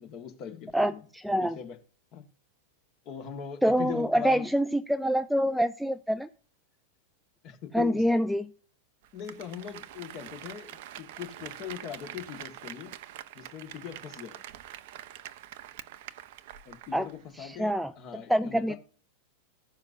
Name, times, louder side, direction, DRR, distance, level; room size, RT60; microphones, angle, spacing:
voice 1, 0.0-1.0 1.4-1.8 2.1-2.3 3.0-4.5 7.4-8.0 9.1-13.0 13.3-14.4 16.6-18.8, left 8 dB, 40° left, 1.5 m, -40 dB
voice 2, 0.7-1.6 3.6-6.3 7.7-8.4 16.9-17.1 17.4-17.9 18.3-18.7, equal, ahead, 0.4 m, -26 dB
Applause, 9.0-17.2 17.5-17.6, right 12 dB, 50° right, 0.5 m, -45 dB
15.5 x 5.7 x 2.6 m
figure-of-eight pair, 90°, 0 cm